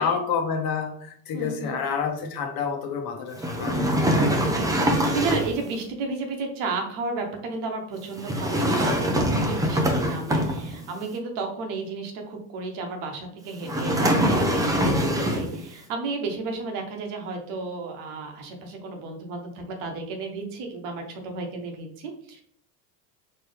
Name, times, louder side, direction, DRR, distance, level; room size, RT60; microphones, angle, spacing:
voice 1, 0.0-4.3, left 6 dB, 45° left, 4 dB, 1.1 m, -29 dB
voice 2, 1.3-1.8 4.6-22.4, right 3 dB, 70° right, 3 dB, 1.3 m, -33 dB
sound 1, 3.4-5.6 8.2-10.9 13.6-15.6, equal, 5° right, 0.6 m, -23 dB
4.4 x 3.1 x 3.3 m, 0.62 s
supercardioid pair, 100°, 49 cm